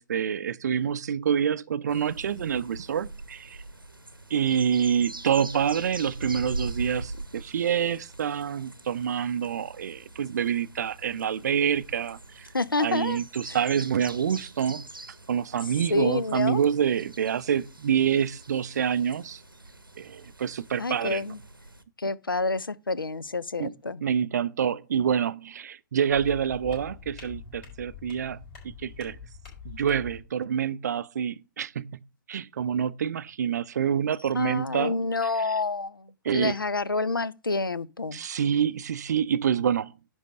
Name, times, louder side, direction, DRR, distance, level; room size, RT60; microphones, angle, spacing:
voice 1, 0.0-3.6 4.3-12.5 12.8-14.9 15.3-19.4 20.0-21.2 23.6-23.7 24.0-28.4 28.8-29.2 29.6-32.0 32.3-35.0 36.2-36.6 38.1-39.9, right 8 dB, 55° right, 0.5 m, -27 dB
sound 1, 1.9-21.8, right 2 dB, 90° right, 0.9 m, -42 dB
voice 2, 12.5-13.2 15.9-16.6 20.8-21.4 22.0-24.0 34.3-38.2, left 3 dB, 80° left, 0.5 m, -28 dB
sound 2, 26.1-30.2, left 7 dB, 35° left, 4.7 m, -44 dB
10.0 x 3.5 x 6.5 m
figure-of-eight pair, 120°, 11 cm